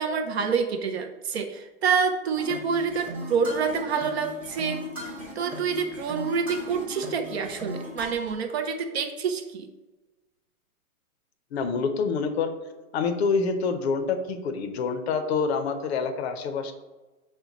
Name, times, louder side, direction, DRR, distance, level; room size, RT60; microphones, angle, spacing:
voice 1, 0.0-4.8 5.4-9.7, right 6 dB, 50° right, 6 dB, 0.4 m, -27 dB
sound 1, 2.4-8.3, equal, 5° right, 0.6 m, -37 dB
voice 2, 11.5-12.5 12.9-16.7, left 5 dB, 45° left, 8 dB, 0.5 m, -26 dB
5.8 x 2.2 x 3.8 m, 1.2 s
hypercardioid pair, 140°, 45 cm